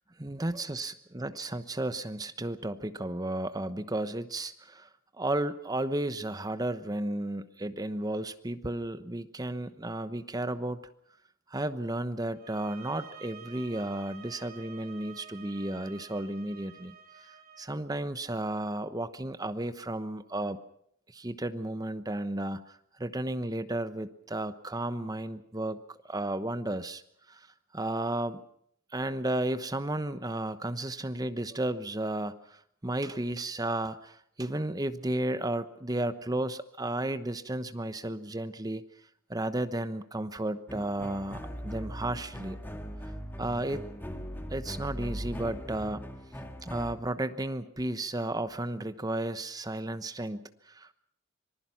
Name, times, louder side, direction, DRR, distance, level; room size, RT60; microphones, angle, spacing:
voice 1, 0.2-4.9 5.2-10.8 11.5-20.6 21.1-27.0 27.3-27.5 27.7-28.4 28.9-38.8 39.3-42.6 43.4-43.9 44.5-46.1 46.6-50.9, right 1 dB, 20° right, 11 dB, 1.0 m, -33 dB
sound 1, 12.4-17.7, right 7 dB, 45° right, 3.8 m, -51 dB
sound 2, 40.7-46.9, equal, 10° left, 1.9 m, -40 dB
26.0 x 20.0 x 5.9 m, 0.66 s
head